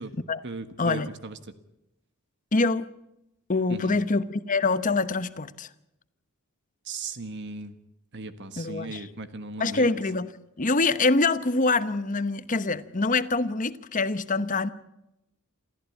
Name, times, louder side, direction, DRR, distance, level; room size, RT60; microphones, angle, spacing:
voice 1, 0.4-1.4 3.7-4.0 6.8-7.7 8.1-10.0, right 3 dB, 55° right, 1.4 m, -37 dB
voice 2, 2.5-2.9 3.5-5.7 8.6-9.0 9.6-10.3 10.6-14.7, left 3 dB, 35° left, 1.0 m, -25 dB
28.0 x 14.5 x 8.6 m
head